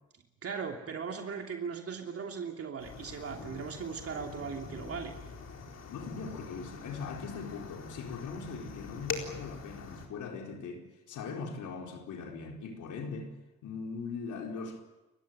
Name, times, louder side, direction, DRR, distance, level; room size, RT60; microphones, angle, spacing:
voice 1, 0.4-5.1, right 6 dB, 50° right, 2.9 m, -38 dB
sound 1, 2.8-10.1, left 5 dB, 55° left, 4.3 m, -43 dB
voice 2, 5.9-13.3 13.6-14.8, left 5 dB, 80° left, 4.5 m, -40 dB
30.0 x 15.5 x 9.2 m
cardioid pair, 90°, 30 cm